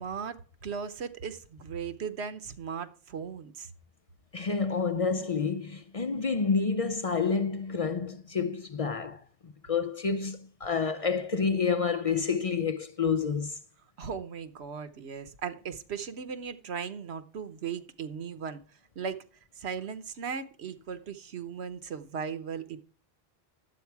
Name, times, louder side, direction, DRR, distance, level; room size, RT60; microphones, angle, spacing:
voice 1, 0.0-3.7 14.0-18.6 19.0-19.2 19.6-22.8, right 6 dB, 90° right, 1.2 m, -37 dB
voice 2, 4.3-13.6, left 5 dB, 40° left, 0.6 m, -29 dB
10.5 x 8.1 x 4.6 m
omnidirectional pair, 1.1 m